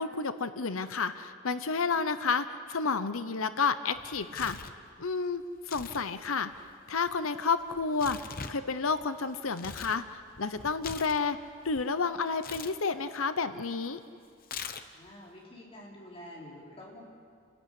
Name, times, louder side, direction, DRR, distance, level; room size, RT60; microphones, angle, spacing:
voice 1, 0.0-4.7 5.0-6.5 6.9-11.4 11.6-14.0, left 4 dB, 65° left, 11 dB, 0.9 m, -31 dB
Tearing, 4.0-4.8 5.6-6.1 6.3-10.0 10.4-11.9 12.4-12.8 14.4-15.1, left 6 dB, 40° left, 1.0 m, -43 dB
voice 2, 14.9-17.0, left 1 dB, 25° left, -4 dB, 5.2 m, -48 dB
29.0 x 14.0 x 9.8 m, 2.2 s
head